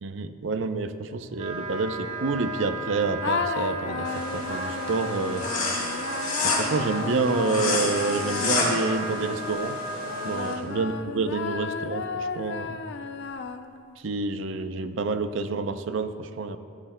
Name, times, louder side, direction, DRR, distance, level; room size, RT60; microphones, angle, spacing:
voice 1, 0.0-5.5 6.4-9.8 10.2-12.8 14.0-16.6, right 3 dB, 60° right, 9 dB, 0.5 m, -28 dB
Wind instrument woodwind instrument, 1.3-10.6, right 2 dB, 35° right, 1.6 m, -35 dB
sound 1, 3.2-9.4 10.0-13.9, left 5 dB, 55° left, 0.4 m, -33 dB
sound 2, 4.0-10.5, left 3 dB, 40° left, 2.5 m, -30 dB
14.5 x 12.5 x 2.2 m, 2.3 s
head